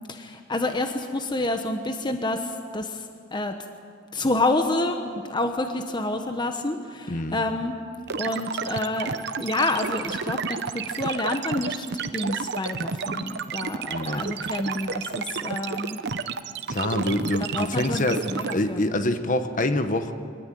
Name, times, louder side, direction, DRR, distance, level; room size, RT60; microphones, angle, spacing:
voice 1, 0.1-3.0 3.3-3.6 4.1-7.8 8.2-11.9 12.1-16.0 17.4-18.8, left 2 dB, 25° left, 6 dB, 1.1 m, -28 dB
voice 2, 7.1-7.4 13.9-14.3 16.7-20.1, left 1 dB, 40° left, 8 dB, 1.3 m, -26 dB
sound 1, 8.1-18.5, right 5 dB, 60° right, 0.8 m, -31 dB
24.5 x 19.0 x 9.2 m, 2.2 s
head